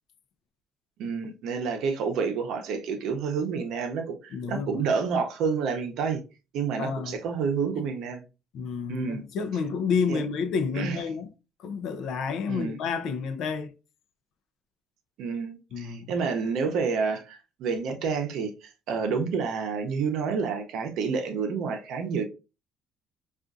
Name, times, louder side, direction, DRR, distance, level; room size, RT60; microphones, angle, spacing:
voice 1, 1.0-4.2 4.5-6.2 6.5-8.2 8.9-9.2 10.1-10.2 10.7-11.0 12.5-12.8 15.2-22.2, right 5 dB, 65° right, 0.7 m, -29 dB
voice 2, 4.3-4.8 6.8-7.2 8.5-11.3 11.6-13.7 15.7-16.1, left 5 dB, 60° left, 0.4 m, -30 dB
3.5 x 2.4 x 2.5 m
cardioid pair, 155°, 0 cm